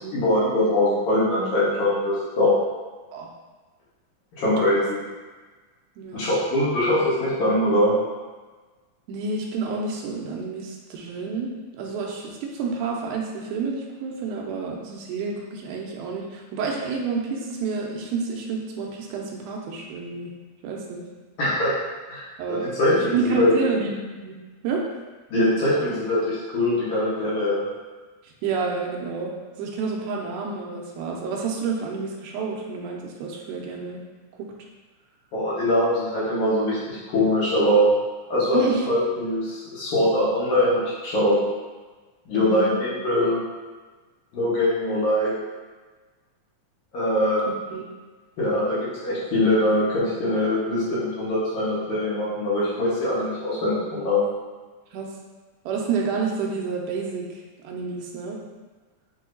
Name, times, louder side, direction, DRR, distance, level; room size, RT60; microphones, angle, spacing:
voice 1, 0.1-2.5 4.4-5.0 6.1-7.9 21.4-21.7 22.1-22.2 22.5-23.5 25.3-27.6 35.3-37.9 38.3-41.4 42.3-43.4 44.3-45.3 46.9-47.4 48.4-54.3, left 1 dB, 70° left, -9 dB, 2.5 m, -22 dB
voice 2, 6.0-6.3 9.1-20.3 20.6-21.1 22.4-24.4 24.6-24.8 28.4-29.3 29.6-34.0 34.4-34.5 38.5-38.9 42.3-42.7 47.5-48.0 54.9-55.1 55.7-57.3 57.6-58.4, right 4 dB, 80° right, 0 dB, 2.1 m, -29 dB
6.2 x 2.8 x 2.6 m, 1.3 s
omnidirectional pair, 3.7 m